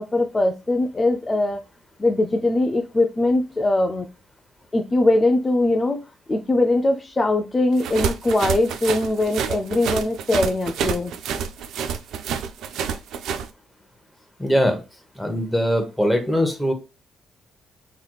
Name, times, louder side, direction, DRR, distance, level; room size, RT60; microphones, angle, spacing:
voice 1, 0.0-1.6 2.0-4.1 4.7-6.0 6.3-11.1, left 2 dB, 25° left, 0.3 m, -21 dB
sound 1, 7.8-13.5, right 7 dB, 80° right, 0.3 m, -28 dB
voice 2, 14.4-14.8 15.2-16.7, equal, 5° left, 0.9 m, -21 dB
3.3 x 2.9 x 2.3 m
cardioid pair, 90°, 0 cm